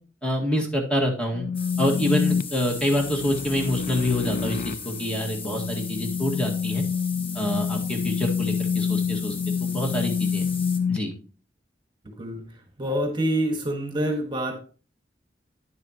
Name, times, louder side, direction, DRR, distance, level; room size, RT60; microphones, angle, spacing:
voice 1, 0.2-1.5 1.8-6.8 7.3-10.4 10.9-11.1, equal, 5° left, 0 dB, 1.8 m, -26 dB
sound 1, 1.3-11.0, left 6 dB, 50° left, 0.3 m, -28 dB
sound 2, 1.5-10.8, left 5 dB, 30° left, 1.3 m, -38 dB
voice 2, 12.0-12.4 12.8-14.6, right 1 dB, 25° right, 4 dB, 1.6 m, -26 dB
10.0 x 8.6 x 2.9 m, 0.37 s
head